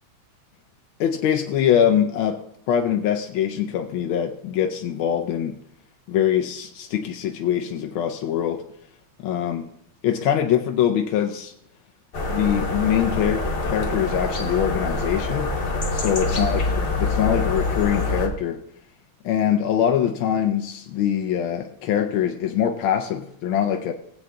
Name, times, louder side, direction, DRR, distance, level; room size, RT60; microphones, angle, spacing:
voice 1, 1.0-5.6 6.1-8.6 9.2-9.6 10.0-11.5 12.3-15.5 15.9-18.6 19.2-23.9, left 9 dB, 85° left, 4 dB, 1.5 m, -23 dB
sound 1, 12.1-18.3, left 2 dB, 40° left, 0.9 m, -25 dB
19.0 x 8.0 x 2.3 m, 0.72 s
omnidirectional pair, 2.2 m